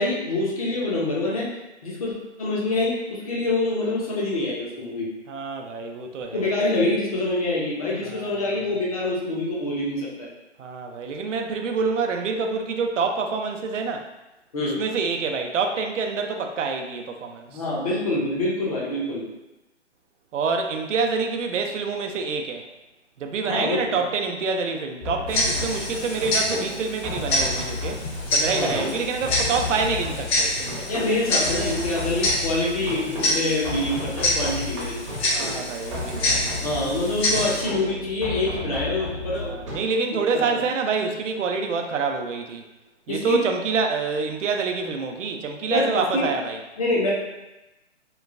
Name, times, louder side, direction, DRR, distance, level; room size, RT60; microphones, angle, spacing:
voice 1, 0.0-1.5 1.8-5.1 6.3-10.3 14.5-14.8 17.5-19.2 23.4-24.0 25.5-25.6 28.5-28.8 30.9-35.0 36.6-39.8 40.3-40.7 43.1-43.4 45.7-46.3 46.8-47.1, left 2 dB, 30° left, -5 dB, 0.5 m, -26 dB
voice 2, 5.3-6.5 8.0-8.6 10.6-14.1 14.6-17.6 20.3-22.6 23.2-28.0 28.3-30.9 35.3-36.7 39.5-42.6 43.1-46.6, right 4 dB, 90° right, 4 dB, 0.5 m, -27 dB
sound 1, 25.0-39.8, left 2 dB, 25° right, 0.6 m, -33 dB
Tick-tock, 25.3-37.6, left 1 dB, 60° left, 0.9 m, -27 dB
3.0 x 2.2 x 2.3 m, 1.0 s
hypercardioid pair, 155°, 36 cm